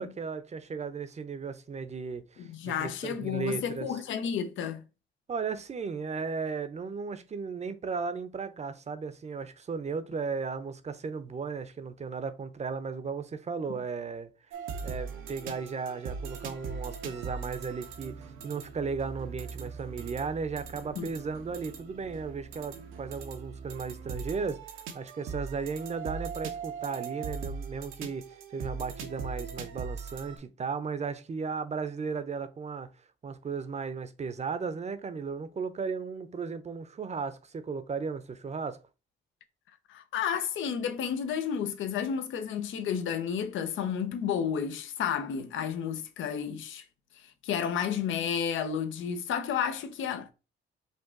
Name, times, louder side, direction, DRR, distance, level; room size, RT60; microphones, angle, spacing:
voice 1, 0.0-4.0 5.3-14.3 14.8-32.9 33.2-38.8, right 5 dB, 35° right, 0.7 m, -35 dB
voice 2, 2.5-4.8 13.7-13.8 21.0-21.1 39.9-46.8 47.4-50.3, left 8 dB, 75° left, 0.8 m, -31 dB
sound 1, 14.5-30.4, right 5 dB, 85° right, 0.9 m, -40 dB
5.3 x 2.5 x 3.8 m
cardioid pair, 90°, 20 cm